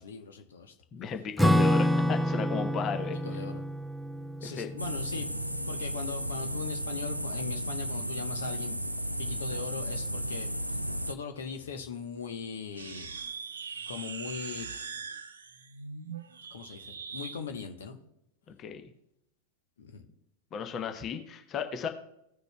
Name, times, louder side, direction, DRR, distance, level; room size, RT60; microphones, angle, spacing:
voice 1, 0.0-0.7 3.2-3.6 4.4-5.3 5.7-8.7 9.2-10.5 11.1-13.1 13.9-14.7 16.5-18.0 19.8-20.0, left 6 dB, 65° left, 6 dB, 1.1 m, -39 dB
voice 2, 0.9-3.2 4.4-4.7 18.6-18.9 20.5-21.9, left 6 dB, 30° left, 6 dB, 1.0 m, -34 dB
Acoustic guitar / Strum, 1.4-6.2, equal, ahead, 0.5 m, -28 dB
sound 1, 4.8-11.1, equal, 90° right, 0.4 m, -34 dB
sound 2, 12.7-17.4, right 5 dB, 70° right, 0.8 m, -41 dB
17.0 x 6.6 x 2.3 m, 0.79 s
figure-of-eight pair, 90°, 0 cm